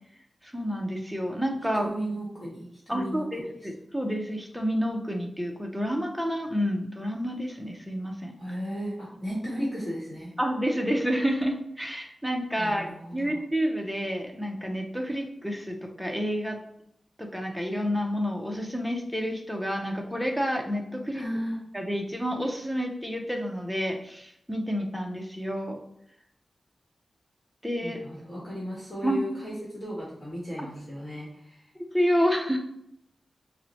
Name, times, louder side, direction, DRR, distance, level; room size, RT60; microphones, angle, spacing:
voice 1, 0.4-1.9 2.9-8.3 10.4-16.6 17.2-21.2 21.7-25.8 27.6-28.0 29.0-29.2 31.9-32.6, equal, ahead, 2 dB, 0.6 m, -29 dB
voice 2, 1.7-3.5 8.4-10.3 12.6-13.4 21.1-21.6 27.8-31.6, equal, 30° left, -6 dB, 1.2 m, -35 dB
5.6 x 2.1 x 3.0 m, 0.74 s
wide cardioid pair, 110°, 0 cm